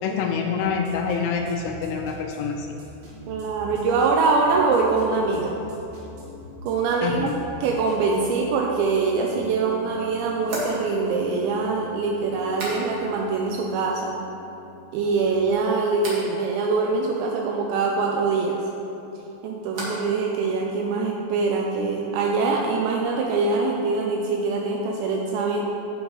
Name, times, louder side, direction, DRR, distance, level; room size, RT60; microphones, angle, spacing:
voice 1, 0.0-2.8 7.0-7.3, left 6 dB, 85° left, 1 dB, 3.3 m, -26 dB
sound 1, 0.6-8.4, right 1 dB, 75° right, 4.3 m, -45 dB
Piano, 3.0-15.5, left 2 dB, 65° left, 1.6 m, -45 dB
voice 2, 3.3-5.5 6.6-7.3 7.6-14.1 14.9-18.6 19.4-25.7, right 4 dB, 90° right, 0 dB, 2.5 m, -23 dB
sound 2, 10.4-13.3 13.5-14.2 14.5-15.1 16.0-16.3 18.7-20.2 20.4-21.1, right 1 dB, 55° right, 1.6 m, -37 dB
12.0 x 8.0 x 3.2 m, 3.0 s
omnidirectional pair, 5.8 m